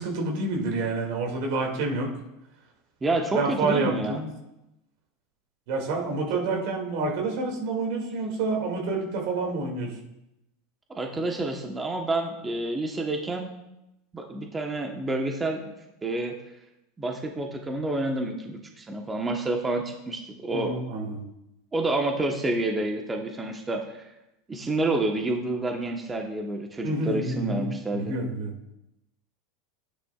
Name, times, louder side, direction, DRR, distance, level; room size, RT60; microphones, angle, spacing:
voice 1, 0.0-2.1 3.3-4.3 5.7-9.9 20.5-21.2 26.8-28.5, right 3 dB, 65° right, 0 dB, 2.4 m, -28 dB
voice 2, 3.0-4.2 6.3-6.4 10.9-13.5 14.1-15.7 16.0-16.3 17.0-20.7 21.7-24.1 24.5-28.1, right 2 dB, 20° right, 2 dB, 1.2 m, -29 dB
12.5 x 9.7 x 2.4 m, 0.90 s
hypercardioid pair, 90°, 0 cm